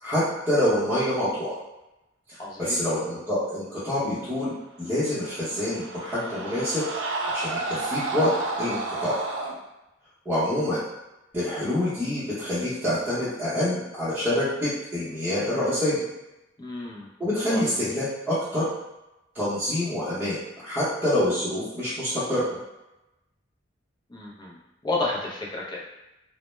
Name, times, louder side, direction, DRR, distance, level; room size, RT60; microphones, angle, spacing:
voice 1, 0.0-1.5 2.6-6.8 7.3-8.3 8.6-9.2 10.2-10.8 11.3-16.0 17.2-18.7 19.3-20.4 20.6-22.4, left 1 dB, 10° right, -14 dB, 0.7 m, -26 dB
voice 2, 2.4-2.8 16.6-17.1 17.5-17.6 24.1-24.6 24.8-25.9, left 2 dB, 20° left, -4 dB, 0.5 m, -31 dB
sound 1, 5.1-9.6, right 3 dB, 70° right, 0.4 m, -31 dB
2.1 x 2.0 x 3.0 m, 0.95 s
head